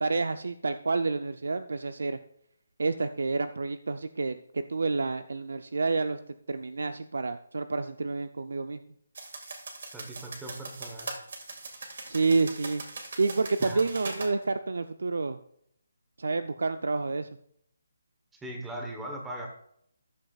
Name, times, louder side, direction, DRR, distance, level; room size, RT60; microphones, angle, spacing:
voice 1, 0.0-2.2 2.8-6.2 6.5-8.8 12.1-12.8 13.2-15.4 16.2-17.3, right 3 dB, 70° right, 10 dB, 0.6 m, -29 dB
sound 1, 9.1-14.3, right 3 dB, 50° right, 2.0 m, -41 dB
voice 2, 9.9-11.1 13.6-13.8 18.4-19.5, right 1 dB, 5° right, 1 dB, 1.1 m, -39 dB
14.0 x 11.0 x 2.4 m, 0.70 s
hypercardioid pair, 175°, 0 cm